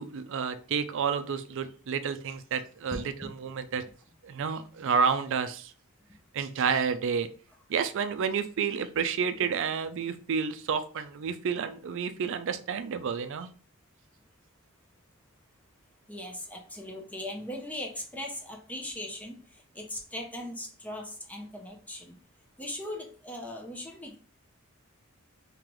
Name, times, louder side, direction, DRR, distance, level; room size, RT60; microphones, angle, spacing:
voice 1, 0.0-3.8 4.2-5.7 6.3-7.3 7.7-13.5, right 6 dB, 60° right, 11 dB, 0.4 m, -30 dB
voice 2, 2.9-3.3 16.1-22.2 22.6-24.2, left 1 dB, 5° left, 0 dB, 0.6 m, -39 dB
3.8 x 3.0 x 3.0 m, 0.40 s
head